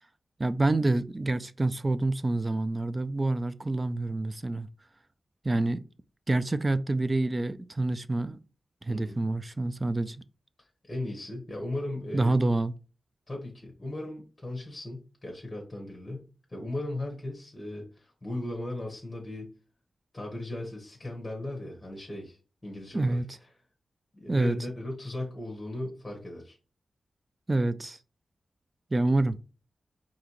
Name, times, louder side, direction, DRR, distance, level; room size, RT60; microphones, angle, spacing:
voice 1, 0.4-4.7 5.4-5.8 6.3-8.4 8.8-10.2 12.1-12.7 22.9-23.3 24.3-24.6 27.5-28.0 28.9-29.5, right 2 dB, 25° right, 0.3 m, -27 dB
voice 2, 10.8-12.3 13.3-19.5 20.1-23.2 24.1-26.6, left 1 dB, 15° left, 1.3 m, -37 dB
4.8 x 2.8 x 2.9 m
wide cardioid pair, 95°, 0 cm